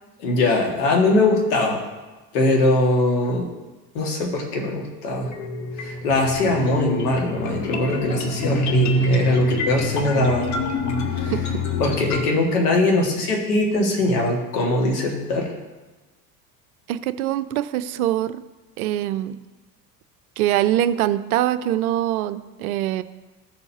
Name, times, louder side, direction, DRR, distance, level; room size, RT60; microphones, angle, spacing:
voice 1, 0.2-1.8 2.3-3.5 3.9-5.3 5.8-10.5 11.2-11.3 11.8-15.5, left 2 dB, 65° left, -1 dB, 2.2 m, -21 dB
sound 1, 5.1-12.2, left 1 dB, 35° left, 1.1 m, -25 dB
voice 2, 11.3-11.6 16.9-18.4 18.8-19.4 20.4-23.0, right 12 dB, 65° right, 13 dB, 0.5 m, -23 dB
14.5 x 6.9 x 2.9 m, 1.2 s
figure-of-eight pair, 65°, 49 cm